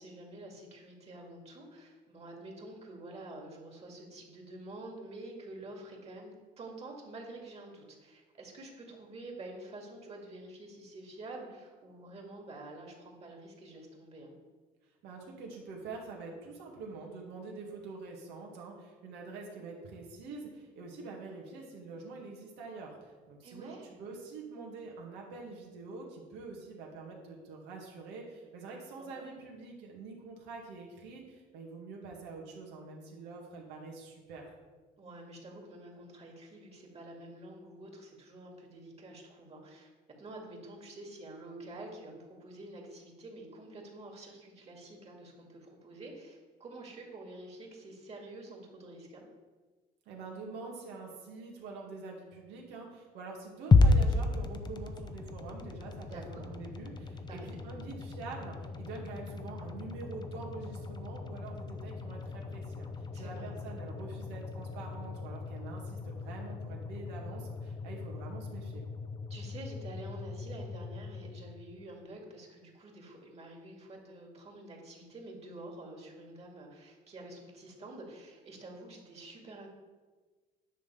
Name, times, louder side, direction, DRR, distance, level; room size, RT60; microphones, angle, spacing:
voice 1, 0.0-14.3 23.4-24.0 29.0-29.1 35.0-39.9 40.2-49.2 56.0-56.5 57.3-57.7 63.1-63.6 69.3-79.7, right 2 dB, 40° right, 0 dB, 2.3 m, -48 dB
voice 2, 15.0-34.4 50.1-68.8, right 4 dB, 90° right, -1 dB, 2.2 m, -45 dB
sound 1, 53.7-71.9, left 3 dB, 25° left, 0.6 m, -33 dB
10.0 x 3.9 x 6.9 m, 1.3 s
cardioid pair, 110°, 17 cm